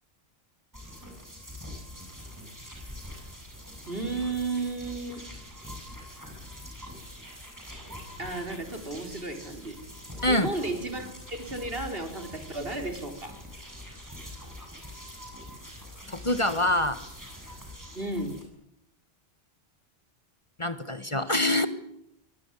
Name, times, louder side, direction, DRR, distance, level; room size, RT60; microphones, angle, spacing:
sound 1, 0.7-18.4, left 1 dB, 15° right, 7.9 m, -44 dB
voice 1, 3.9-5.2 8.2-9.8 10.3-13.4 17.9-18.4, right 2 dB, 65° right, 6 dB, 4.3 m, -33 dB
voice 2, 16.1-17.0 20.6-21.7, left 1 dB, 30° left, 11 dB, 1.7 m, -25 dB
25.0 x 19.5 x 9.9 m, 0.76 s
omnidirectional pair, 1.0 m